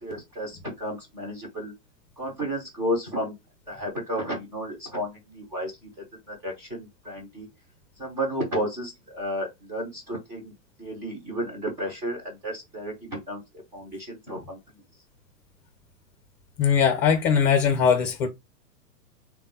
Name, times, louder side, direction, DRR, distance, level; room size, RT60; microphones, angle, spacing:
voice 1, 0.0-1.7 2.2-3.3 3.7-5.7 6.3-7.5 8.0-10.5 10.8-13.4 13.7-14.6, equal, 5° right, 0.4 m, -32 dB
voice 2, 16.6-18.3, left 7 dB, 25° left, 0.7 m, -20 dB
3.4 x 2.2 x 4.1 m
figure-of-eight pair, 110°, 50 cm